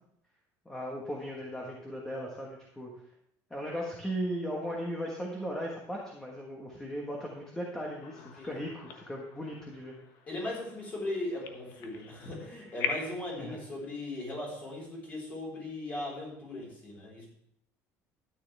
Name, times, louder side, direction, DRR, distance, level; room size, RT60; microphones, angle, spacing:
voice 1, 0.6-2.9 3.5-9.9 13.4-13.6, equal, 10° left, -1 dB, 1.4 m, -37 dB
sound 1, 8.0-13.3, left 6 dB, 65° left, 1.2 m, -41 dB
voice 2, 8.2-8.5 10.3-17.3, left 1 dB, 25° left, -2 dB, 4.3 m, -38 dB
13.0 x 9.7 x 3.4 m, 0.73 s
cardioid pair, 170°, 7 cm